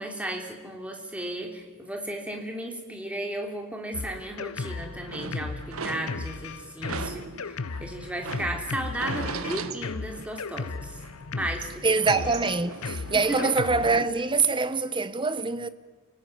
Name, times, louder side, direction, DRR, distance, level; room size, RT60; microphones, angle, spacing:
voice 1, 0.0-11.0 11.3-11.8 13.1-13.4, right 1 dB, 5° right, 3.5 m, -34 dB
Drum kit, 3.9-14.0, left 4 dB, 90° left, 0.8 m, -36 dB
sound 1, 4.7-6.5 6.8-10.7 11.0-14.1, right 4 dB, 75° right, 1.4 m, -38 dB
voice 2, 5.4-5.8 11.8-15.7, right 4 dB, 20° right, 1.0 m, -25 dB
29.0 x 18.5 x 9.4 m
head